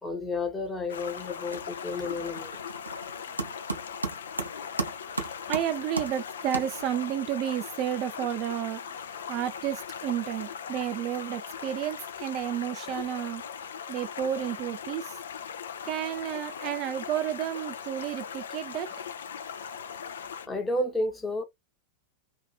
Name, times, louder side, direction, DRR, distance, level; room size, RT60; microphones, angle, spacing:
voice 1, 0.0-2.6 20.5-21.4, left 2 dB, 10° left, 0.9 m, -31 dB
sound 1, 0.6-1.0 1.3-7.2, right 3 dB, 80° right, 0.6 m, -36 dB
Stream, 0.9-20.5, left 7 dB, 65° left, 0.4 m, -39 dB
voice 2, 5.2-8.8 9.3-13.4 13.9-15.2 15.8-18.9, right 11 dB, 40° right, 0.3 m, -31 dB
2.7 x 2.5 x 2.3 m
figure-of-eight pair, 90°, 0 cm